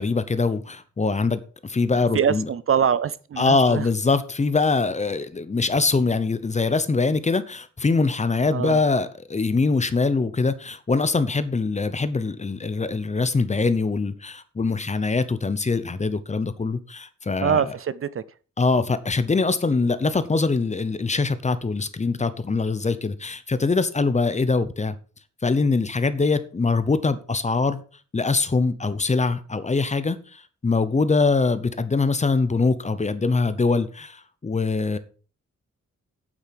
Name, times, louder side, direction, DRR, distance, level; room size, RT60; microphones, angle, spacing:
voice 1, 0.0-2.5 3.4-17.7 18.6-25.0 25.4-27.8 28.1-35.0, left 3 dB, 25° left, 0.8 m, -23 dB
voice 2, 2.1-3.8 8.5-8.8 17.4-18.2, right 7 dB, 50° right, 0.5 m, -23 dB
9.1 x 8.1 x 5.8 m
wide cardioid pair, 180°, 29 cm